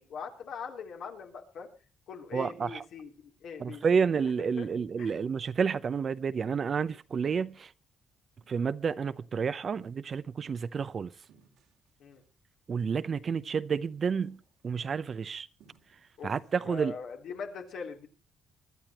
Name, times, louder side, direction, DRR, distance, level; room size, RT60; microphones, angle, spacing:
voice 1, 0.0-1.7 2.1-4.0 4.6-4.7 5.0-5.1 12.0-12.2 16.2-16.3 16.6-18.1, left 6 dB, 75° left, 3.2 m, -41 dB
voice 2, 2.3-2.8 3.6-7.7 8.5-11.1 12.7-14.4 14.6-15.5 16.2-16.9, right 6 dB, 45° right, 0.7 m, -30 dB
sound 1, 8.4-8.7 9.8-10.3 10.7-10.9 11.2-12.3 12.8-13.5 13.8-13.9 14.2-14.9 15.6-16.2, right 6 dB, 85° right, 2.7 m, -63 dB
24.0 x 11.5 x 3.0 m
cardioid pair, 90°, 0 cm